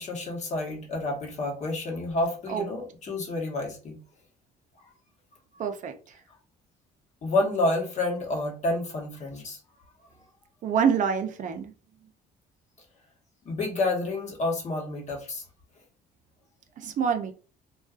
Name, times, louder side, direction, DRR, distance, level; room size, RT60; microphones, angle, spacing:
voice 1, 0.0-4.0 7.2-9.6 13.4-15.4, left 2 dB, 45° left, 0 dB, 1.0 m, -29 dB
voice 2, 5.6-6.2 10.6-11.7 16.8-17.3, right 7 dB, 50° right, 7 dB, 0.4 m, -26 dB
2.5 x 2.3 x 2.3 m, 0.36 s
cardioid pair, 110°, 17 cm